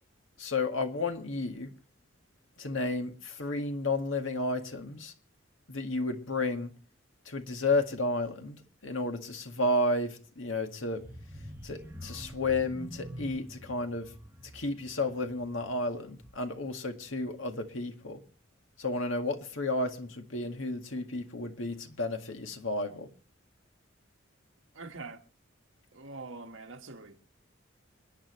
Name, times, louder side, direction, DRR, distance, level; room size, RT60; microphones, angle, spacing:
voice 1, 0.4-1.7 2.6-5.1 5.7-6.7 7.3-8.6 8.8-11.0 11.6-14.1 14.5-18.2 18.8-23.1, left 2 dB, 75° left, 1.9 m, -32 dB
sound 1, 10.9-16.7 17.1-17.3 17.6-17.7, equal, 10° right, 1.4 m, -46 dB
voice 2, 24.7-25.2 25.9-27.2, right 3 dB, 75° right, 1.6 m, -44 dB
28.5 x 10.0 x 3.2 m
head